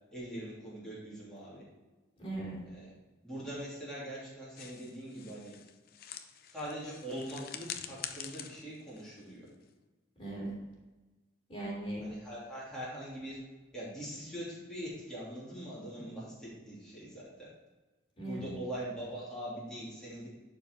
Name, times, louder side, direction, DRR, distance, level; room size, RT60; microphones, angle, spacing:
voice 1, 0.1-1.6 2.7-2.9 3.2-5.5 6.5-9.5 12.0-13.4 13.7-17.5 18.2-20.3, equal, 5° left, -9 dB, 3.1 m, -42 dB
voice 2, 2.2-2.6 10.2-10.7 11.5-12.1 18.2-18.6, right 1 dB, 30° left, -4 dB, 3.2 m, -39 dB
sound 1, 4.6-9.8, left 9 dB, 50° left, 0.6 m, -46 dB
11.5 x 4.7 x 4.7 m, 1.2 s
head